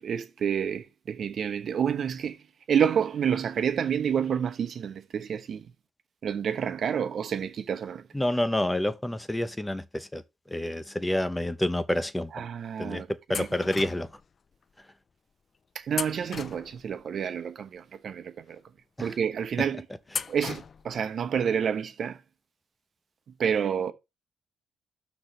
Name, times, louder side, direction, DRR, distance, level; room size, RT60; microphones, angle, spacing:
voice 1, 0.0-2.4 2.7-5.7 6.2-8.1 12.3-13.5 15.7-18.6 19.0-19.8 20.3-22.2 23.4-23.9, right 8 dB, 55° right, 1.1 m, -29 dB
voice 2, 8.1-10.2 10.5-12.5 12.8-14.1 19.0-19.1, left 1 dB, 10° left, 0.7 m, -28 dB
sound 1, 13.3-14.2 15.9-17.0 20.1-21.0, left 6 dB, 45° left, 0.4 m, -36 dB
12.0 x 4.1 x 3.3 m
cardioid pair, 90°, 0 cm